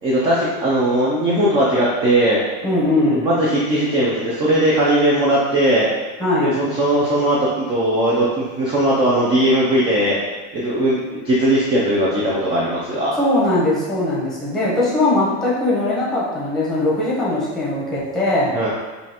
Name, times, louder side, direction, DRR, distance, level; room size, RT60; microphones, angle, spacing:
voice 1, 0.0-2.4 2.9-5.9 6.4-10.2 10.5-13.1 18.5-18.7, right 1 dB, 15° right, -6 dB, 0.4 m, -18 dB
voice 2, 2.6-3.2 6.2-6.6 13.2-18.5, left 1 dB, ahead, -7 dB, 0.9 m, -20 dB
5.2 x 2.4 x 2.8 m, 1.3 s
supercardioid pair, 160°, 35 cm